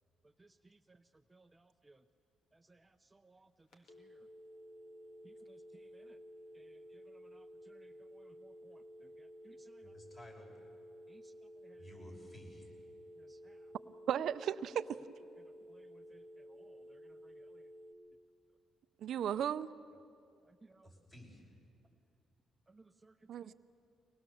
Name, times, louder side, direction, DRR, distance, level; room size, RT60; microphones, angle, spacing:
voice 1, 0.4-1.0 1.3-2.0 2.5-4.2 5.2-6.2 6.5-9.9 11.1-11.3 11.6-11.8 13.2-13.6 15.7-17.6 20.5-20.9 22.7-23.1 23.4-23.5, right 3 dB, 15° right, 8 dB, 0.6 m, -65 dB
sound 1, 3.7-17.9, equal, 75° left, 1.9 m, -54 dB
voice 2, 9.8-10.5 11.8-12.8 20.8-21.6, left 1 dB, 35° left, 0 dB, 5.9 m, -54 dB
voice 3, 14.1-14.9 19.0-19.7 23.3-23.5, right 9 dB, 70° right, 13 dB, 0.5 m, -35 dB
24.0 x 19.5 x 7.0 m, 2.5 s
cardioid pair, 90°, 0 cm